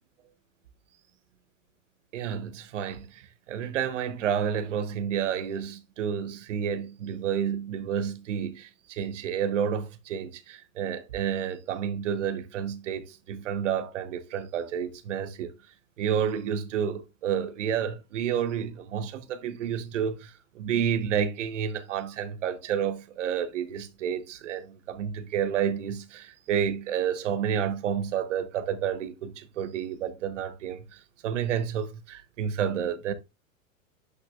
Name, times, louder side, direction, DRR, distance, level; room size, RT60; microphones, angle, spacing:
voice 1, 2.1-15.5 16.0-33.1, right 8 dB, 60° right, 1.2 m, -30 dB
9.5 x 5.5 x 2.4 m
figure-of-eight pair, 95°, 41 cm